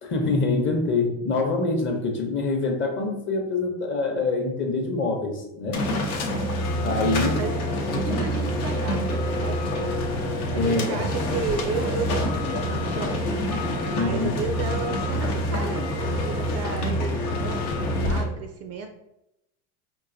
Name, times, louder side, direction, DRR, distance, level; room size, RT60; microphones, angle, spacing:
voice 1, 0.0-5.8 6.8-7.4 10.5-11.0 14.0-14.4, left 3 dB, 30° left, 3 dB, 0.7 m, -25 dB
sound 1, 5.7-18.2, left 1 dB, 85° left, 0.8 m, -26 dB
voice 2, 7.2-7.5 8.0-13.5 13.9-18.9, right 5 dB, 40° right, 5 dB, 0.4 m, -33 dB
4.6 x 2.6 x 2.6 m, 0.85 s
hypercardioid pair, 100°, 42 cm